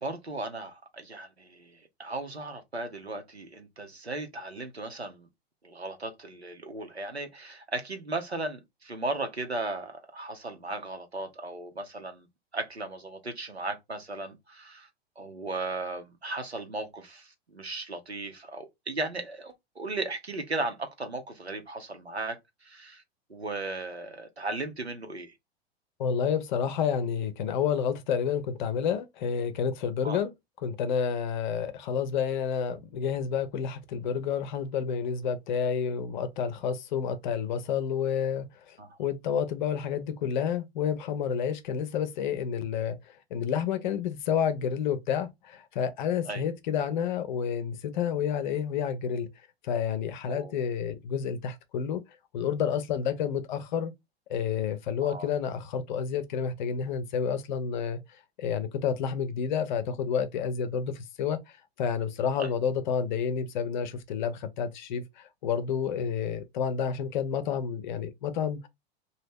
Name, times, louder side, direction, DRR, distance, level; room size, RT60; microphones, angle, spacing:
voice 1, 0.0-5.3 5.6-12.3 12.5-14.9 15.2-23.0 23.3-25.3 30.0-30.2 38.8-39.0 46.3-46.4 50.3-50.6 55.0-55.3 62.3-62.5, right 2 dB, 90° right, 0.8 m, -36 dB
voice 2, 26.0-30.3 30.6-49.3 49.6-52.0 52.3-53.9 54.3-58.0 58.4-61.4 61.8-68.7, left 7 dB, 50° left, 0.6 m, -30 dB
3.0 x 2.3 x 3.4 m
figure-of-eight pair, 95°, 31 cm